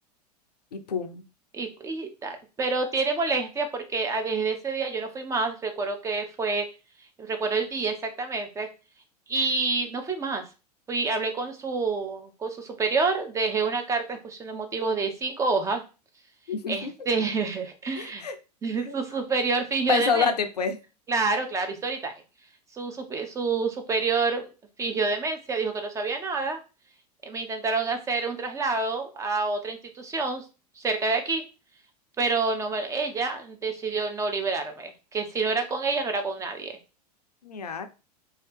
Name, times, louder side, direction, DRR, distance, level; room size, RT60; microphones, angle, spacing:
voice 1, 0.7-1.2 16.5-16.9 18.0-18.4 18.8-18.9 19.9-20.8 37.4-37.9, left 5 dB, 75° left, 8 dB, 0.5 m, -27 dB
voice 2, 1.5-6.7 7.2-8.7 9.3-10.4 10.9-15.8 16.7-18.2 18.6-20.3 21.1-22.1 22.7-24.4 24.8-26.6 27.3-30.4 30.8-31.4 32.2-36.7, right 4 dB, 15° right, 5 dB, 0.5 m, -28 dB
2.8 x 2.8 x 3.2 m, 0.32 s
figure-of-eight pair, 85°, 21 cm